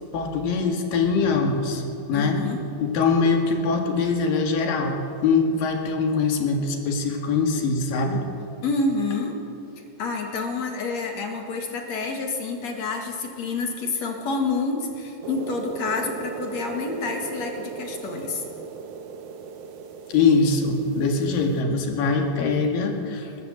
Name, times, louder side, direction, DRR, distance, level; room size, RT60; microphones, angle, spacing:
voice 1, 0.1-1.8 2.1-2.4 2.8-8.3 20.1-23.3, left 4 dB, 70° left, 3 dB, 3.7 m, -23 dB
voice 2, 2.1-2.6 8.6-9.4 10.0-18.4, left 3 dB, 50° left, 2 dB, 3.0 m, -28 dB
sound 1, 15.2-21.6, right 5 dB, 75° right, 3.0 m, -37 dB
21.5 x 19.0 x 7.9 m, 2.8 s
omnidirectional pair, 4.2 m